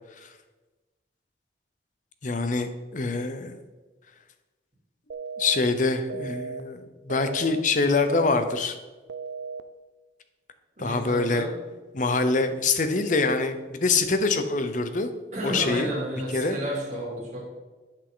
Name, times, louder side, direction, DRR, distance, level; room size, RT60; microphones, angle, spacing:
voice 1, 2.2-3.6 5.4-8.8 10.8-11.5 11.9-15.1 15.4-15.9 16.3-16.6, left 3 dB, 45° left, 9 dB, 0.7 m, -25 dB
Busy Signal, 5.1-5.6 6.1-6.6 7.1-7.6 8.1-8.6 9.1-9.6, right 5 dB, 70° right, 0.4 m, -36 dB
voice 2, 10.8-11.5 15.3-17.4, right 1 dB, 40° right, -4 dB, 2.8 m, -31 dB
10.0 x 5.8 x 3.8 m, 1.2 s
head